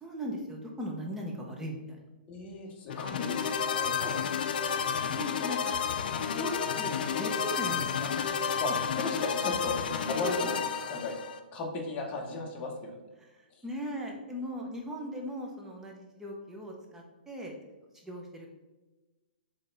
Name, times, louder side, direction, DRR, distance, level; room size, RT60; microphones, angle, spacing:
voice 1, 0.0-2.0 4.6-5.7 6.2-8.3 13.2-17.5 18.0-18.5, equal, 10° right, 0 dB, 0.7 m, -39 dB
voice 2, 2.3-4.2 8.6-8.7 9.0-10.6 10.9-11.1 11.5-13.0 13.5-13.6, left 3 dB, 25° left, 0 dB, 0.9 m, -35 dB
sound 1, 2.9-11.4, left 7 dB, 65° left, 0.4 m, -31 dB
3.9 x 3.3 x 3.9 m, 1.1 s
hypercardioid pair, 145°, 5 cm